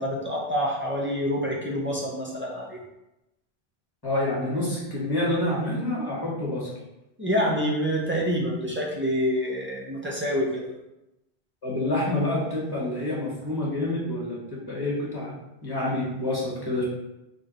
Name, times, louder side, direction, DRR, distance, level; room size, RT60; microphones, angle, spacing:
voice 1, 0.0-2.8 7.2-10.6, equal, 20° right, -3 dB, 0.4 m, -27 dB
voice 2, 4.0-6.7 11.6-15.3 15.6-16.8, left 1 dB, 20° left, -5 dB, 1.1 m, -27 dB
3.7 x 2.1 x 4.0 m, 0.92 s
omnidirectional pair, 1.1 m